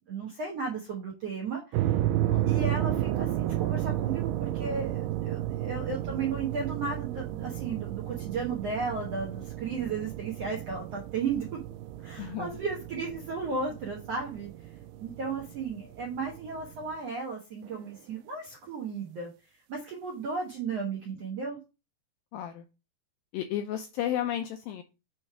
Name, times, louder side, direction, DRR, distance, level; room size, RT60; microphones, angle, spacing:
voice 1, 0.1-2.0 2.5-11.4 12.0-14.5 15.0-19.3 19.7-21.6, right 4 dB, 70° right, 1.5 m, -34 dB
sound 1, 1.7-16.9, right 13 dB, 85° right, 2.6 m, -32 dB
voice 2, 12.2-12.6 22.3-22.7 23.3-24.8, left 11 dB, 85° left, 2.1 m, -33 dB
7.0 x 3.2 x 5.8 m
omnidirectional pair, 4.7 m